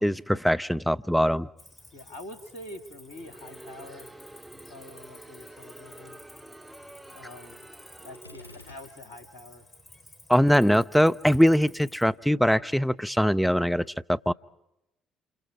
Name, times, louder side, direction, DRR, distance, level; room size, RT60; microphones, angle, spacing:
voice 1, 0.0-1.5 10.3-14.3, equal, ahead, 0.8 m, -22 dB
Cricket, 1.6-12.0, left 1 dB, 30° left, 6.3 m, -53 dB
voice 2, 1.9-4.1 4.5-6.2 7.1-7.6 8.0-9.6 10.5-10.7, left 1 dB, 70° left, 2.3 m, -45 dB
Crowd, 3.1-8.8, right 1 dB, 15° right, 2.8 m, -48 dB
Gunshot gunfire, 8.1-9.4, left 2 dB, 90° left, 4.2 m, -50 dB
28.5 x 26.5 x 5.0 m
figure-of-eight pair, 50°, 0 cm